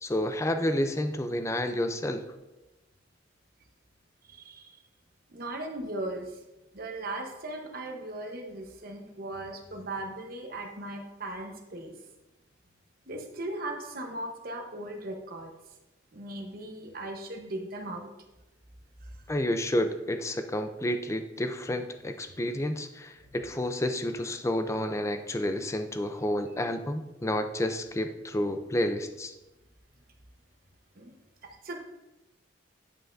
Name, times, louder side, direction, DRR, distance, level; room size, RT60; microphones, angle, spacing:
voice 1, 0.0-2.2 19.3-29.3, left 1 dB, 15° left, 8 dB, 0.4 m, -30 dB
voice 2, 4.3-4.7 5.3-6.3 6.7-11.9 13.1-15.5 16.1-18.1 30.9-31.1 31.6-31.8, right 1 dB, 50° right, 2 dB, 1.0 m, -38 dB
9.6 x 5.6 x 2.6 m, 1.0 s
head